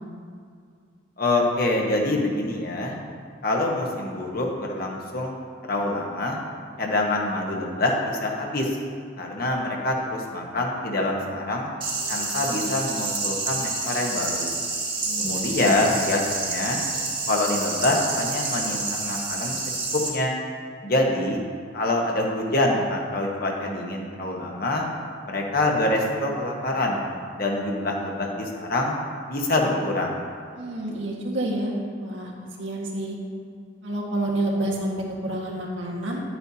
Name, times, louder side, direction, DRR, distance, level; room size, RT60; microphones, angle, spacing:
voice 1, 1.2-2.9 3.4-5.4 5.7-6.4 6.8-8.8 9.2-11.7 12.1-14.6 15.2-16.8 17.3-19.6 19.9-20.3 20.8-21.4 21.7-24.8 25.3-27.0 27.4-29.0 29.3-30.2, left 2 dB, 50° left, -1 dB, 1.2 m, -25 dB
sound 1, 11.8-20.1, right 3 dB, 25° right, 1.5 m, -29 dB
voice 2, 15.0-15.9 30.5-31.7 32.0-32.3 32.6-33.2 33.8-36.2, right 1 dB, 85° right, -2 dB, 1.6 m, -29 dB
11.0 x 8.8 x 2.8 m, 2.2 s
head